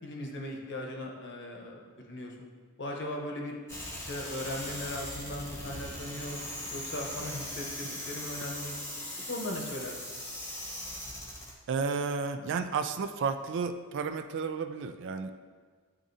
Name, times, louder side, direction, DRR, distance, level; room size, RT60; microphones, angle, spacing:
voice 1, 0.0-2.5 2.8-3.6 3.9-6.4 6.7-8.8 9.3-10.2, left 1 dB, 55° left, 0 dB, 0.9 m, -38 dB
sound 1, 3.7-11.5, left 1 dB, 10° left, 0.9 m, -40 dB
voice 2, 11.7-15.3, right 5 dB, 55° right, 9 dB, 0.3 m, -32 dB
10.0 x 3.6 x 2.7 m, 1.5 s
head